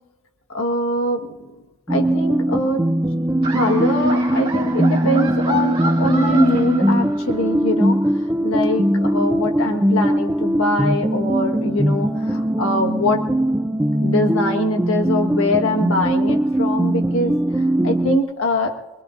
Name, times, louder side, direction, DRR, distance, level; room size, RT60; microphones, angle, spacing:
voice 1, 0.5-1.3 1.9-2.9 3.5-13.2 14.0-17.4 17.8-18.7, left 1 dB, 70° left, 4 dB, 1.6 m, -23 dB
sound 1, 1.9-18.2, right 1 dB, 10° right, 0.4 m, -20 dB
Laughter, 3.4-7.4, right 3 dB, 25° right, 4.2 m, -30 dB
23.5 x 21.5 x 2.6 m, 1.1 s
head